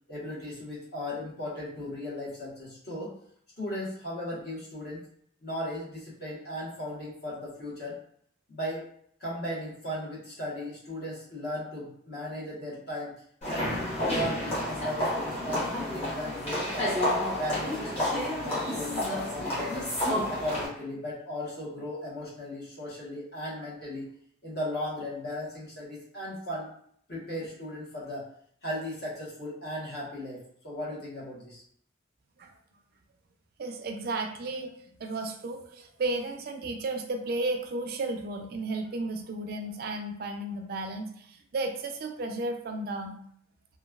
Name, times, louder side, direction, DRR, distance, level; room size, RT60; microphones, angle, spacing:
voice 1, 0.1-3.1 3.6-5.0 5.4-8.0 8.5-8.8 9.2-13.1 13.4-13.6 14.0-17.0 17.3-19.9 20.3-24.1 24.4-26.7 27.1-28.3 28.6-31.6, left 1 dB, 55° left, -6 dB, 1.1 m, -36 dB
sound 1, 13.4-20.7, left 1 dB, 35° left, 1.2 m, -30 dB
voice 2, 33.6-34.7 35.0-43.2, right 2 dB, 50° right, 4 dB, 0.3 m, -33 dB
3.0 x 2.2 x 2.3 m, 0.64 s
head